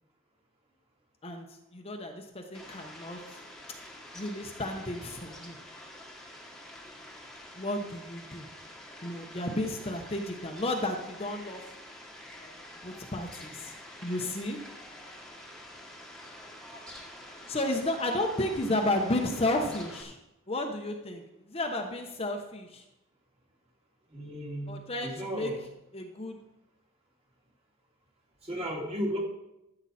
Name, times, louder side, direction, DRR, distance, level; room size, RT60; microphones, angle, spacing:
voice 1, 1.2-3.4 4.1-5.6 7.5-8.5 9.0-11.6 12.4-13.8 14.0-14.6 17.5-20.2 20.5-22.8 24.7-25.5 25.9-26.4, left 1 dB, 30° left, 3 dB, 1.0 m, -33 dB
Fowl, 2.5-20.0, left 1 dB, 5° left, 1.5 m, -47 dB
voice 2, 24.1-25.5 28.4-29.2, equal, 30° right, -2 dB, 2.4 m, -35 dB
14.0 x 7.9 x 4.2 m, 0.92 s
head